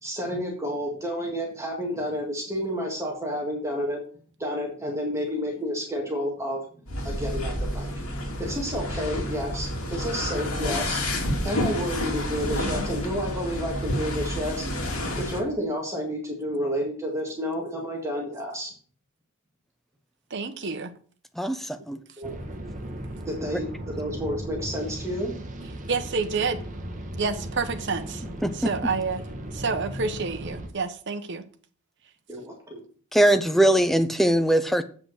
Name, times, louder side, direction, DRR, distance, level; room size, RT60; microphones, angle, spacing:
voice 1, 0.0-4.0 4.4-6.6 7.0-7.9 8.4-11.0 11.4-14.6 15.2-18.7 22.2-22.4 23.3-25.4 32.3-32.8, equal, 15° right, 1.9 m, -30 dB
sound 1, 6.9-15.4, left 1 dB, 85° left, 2.7 m, -29 dB
voice 2, 20.3-20.9 25.9-26.6 27.2-28.2 28.5-29.3 29.5-31.5, right 4 dB, 55° right, 1.0 m, -28 dB
voice 3, 21.4-22.0 28.4-28.7 33.1-34.8, right 1 dB, ahead, 0.6 m, -21 dB
sound 2, 22.2-30.7, right 1 dB, 35° right, 1.4 m, -37 dB
8.3 x 5.8 x 6.4 m
head